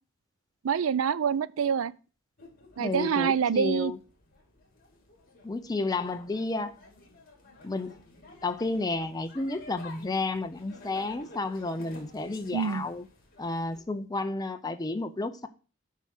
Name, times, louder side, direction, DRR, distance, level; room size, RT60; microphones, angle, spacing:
voice 1, 0.6-1.9 2.8-3.9 12.5-12.8, right 7 dB, 85° right, 0.4 m, -26 dB
sound 1, 2.4-13.8, left 2 dB, 45° left, 2.8 m, -52 dB
voice 2, 2.8-4.0 5.4-6.7 7.6-7.9 8.4-13.1 13.4-15.5, left 3 dB, 20° left, 0.5 m, -31 dB
8.4 x 4.7 x 5.8 m
head